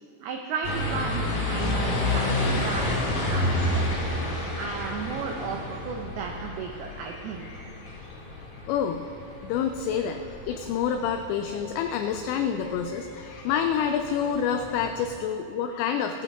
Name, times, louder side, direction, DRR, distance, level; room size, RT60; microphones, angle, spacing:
voice 1, 0.2-3.8 4.6-7.6, right 5 dB, 85° right, 2 dB, 2.2 m, -34 dB
sound 1, 0.6-15.1, left 1 dB, 50° left, 1.9 m, -31 dB
voice 2, 8.7-9.1 9.4-16.2, left 8 dB, 85° left, 6 dB, 2.6 m, -28 dB
16.0 x 14.0 x 3.5 m, 2.4 s
omnidirectional pair, 5.5 m